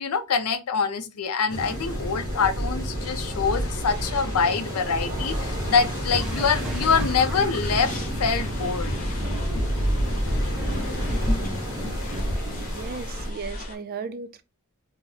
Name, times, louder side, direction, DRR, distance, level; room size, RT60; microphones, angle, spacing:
voice 1, 0.0-7.9 8.2-8.9 9.5-9.6, left 5 dB, 85° left, 0.5 m, -25 dB
sound 1, 1.5-13.3, equal, 50° left, 1.4 m, -30 dB
sound 2, 6.1-12.7, equal, 5° right, 0.6 m, -38 dB
sound 3, 7.6-13.7, equal, 35° left, 0.6 m, -31 dB
voice 2, 12.6-14.4, right 5 dB, 40° right, 0.3 m, -36 dB
2.9 x 2.0 x 3.7 m
head